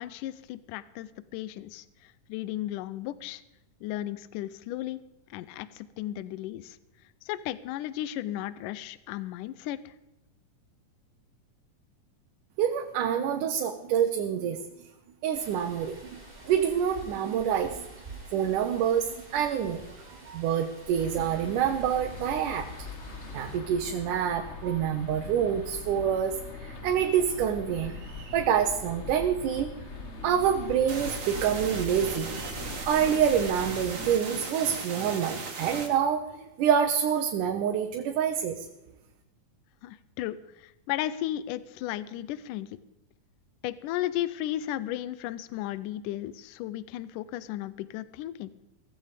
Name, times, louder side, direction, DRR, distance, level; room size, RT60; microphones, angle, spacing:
voice 1, 0.0-3.4 3.8-5.0 5.3-6.8 7.2-9.9 39.8-42.7 43.6-48.5, left 13 dB, 80° left, 16 dB, 2.2 m, -35 dB
voice 2, 12.6-14.6 15.2-16.2 16.5-17.8 18.3-22.9 23.3-29.7 30.2-38.7, right 8 dB, 75° right, 4 dB, 2.5 m, -27 dB
sound 1, 15.3-23.6, right 2 dB, 15° right, 4.9 m, -48 dB
sound 2, 21.0-34.1, left 3 dB, 40° left, 1.0 m, -41 dB
sound 3, 30.9-35.9, right 4 dB, 45° right, 3.0 m, -37 dB
17.0 x 15.0 x 5.1 m, 0.96 s
omnidirectional pair, 3.8 m